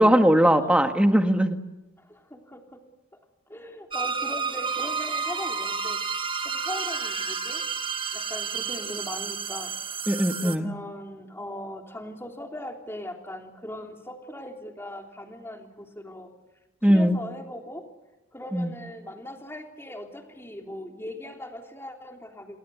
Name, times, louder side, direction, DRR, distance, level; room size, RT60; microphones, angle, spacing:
voice 1, 0.0-1.6 10.1-10.7 16.8-17.2 18.5-18.7, equal, 5° right, 6 dB, 1.7 m, -20 dB
voice 2, 2.0-2.8 3.5-6.0 6.4-7.6 8.1-10.1 10.4-16.3 16.9-17.9 18.3-22.6, left 1 dB, 10° left, 3 dB, 3.4 m, -39 dB
sound 1, 3.9-10.6, right 5 dB, 25° right, 1.4 m, -31 dB
29.0 x 21.0 x 8.2 m, 1.0 s
head